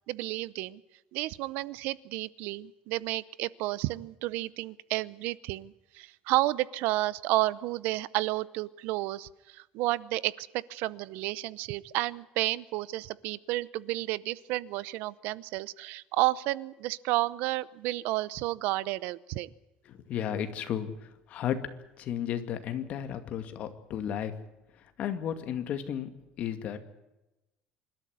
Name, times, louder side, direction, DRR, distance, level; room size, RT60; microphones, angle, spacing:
voice 1, 0.1-0.8 1.1-19.5, right 18 dB, 70° right, 20 dB, 0.7 m, -31 dB
voice 2, 19.9-20.9 21.3-21.6 22.0-24.3 25.0-26.1 26.4-26.8, left 9 dB, 45° left, 9 dB, 2.2 m, -33 dB
26.5 x 13.0 x 9.5 m, 0.97 s
cardioid pair, 165°, 3 cm